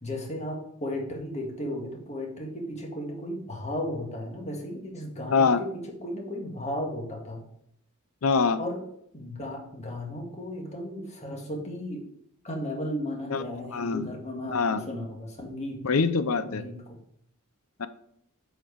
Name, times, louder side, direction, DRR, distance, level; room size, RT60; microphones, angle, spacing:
voice 1, 0.0-5.7 6.0-7.4 8.6-8.8 9.1-12.0 12.4-15.8 16.4-16.7, left 1 dB, 30° left, 1 dB, 1.7 m, -35 dB
voice 2, 5.3-5.6 8.2-8.6 13.3-13.4 13.7-14.1 14.5-14.8 15.8-16.6 17.8-17.9, left 5 dB, 75° left, 12 dB, 0.6 m, -24 dB
8.0 x 4.6 x 4.6 m, 0.71 s
head